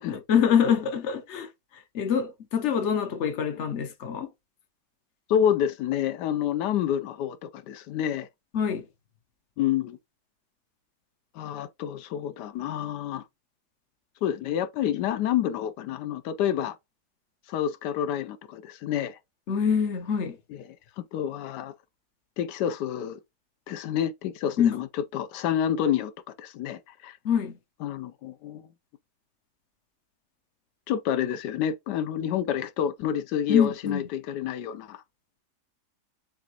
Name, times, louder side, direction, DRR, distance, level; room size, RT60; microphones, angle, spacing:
voice 1, 0.1-4.3 8.5-8.9 19.5-20.4 24.6-24.8 27.2-27.6 33.5-34.1, left 7 dB, 55° left, 0.8 m, -25 dB
voice 2, 5.3-8.3 9.6-10.0 11.3-13.2 14.2-16.8 17.5-19.2 21.0-21.7 22.4-23.2 23.7-24.9 25.1-27.2 27.8-28.7 30.9-35.0, left 9 dB, 80° left, 1.2 m, -28 dB
7.0 x 2.4 x 2.8 m
omnidirectional pair, 1.8 m